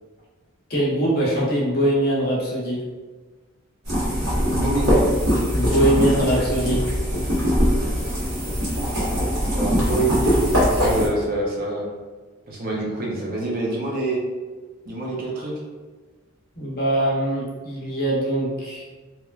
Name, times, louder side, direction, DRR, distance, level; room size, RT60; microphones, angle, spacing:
voice 1, 0.7-2.8 5.5-6.8 16.6-18.8, right 1 dB, 45° left, -5 dB, 0.7 m, -22 dB
sound 1, 3.9-11.1, equal, 90° right, 1.2 m, -21 dB
voice 2, 4.5-5.1 9.5-11.9 12.5-14.2 14.9-15.5, right 2 dB, 40° right, -3 dB, 0.5 m, -26 dB
3.0 x 2.2 x 2.3 m, 1.3 s
head